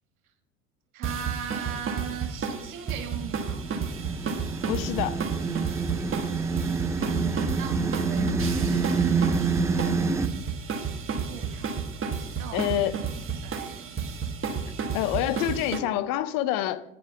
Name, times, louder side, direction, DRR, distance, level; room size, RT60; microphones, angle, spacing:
voice 1, 0.9-3.7 6.5-9.9 10.8-10.9 11.2-14.1, right 8 dB, 80° right, 5 dB, 1.6 m, -40 dB
sound 1, 1.0-15.8, right 5 dB, 30° right, 1.4 m, -32 dB
sound 2, 3.2-10.3, right 4 dB, 10° right, 0.3 m, -27 dB
voice 2, 4.7-5.2 12.5-12.9 14.9-16.8, left 12 dB, 55° left, 15 dB, 0.7 m, -27 dB
9.5 x 5.0 x 5.8 m, 0.86 s
hypercardioid pair, 80°, 42 cm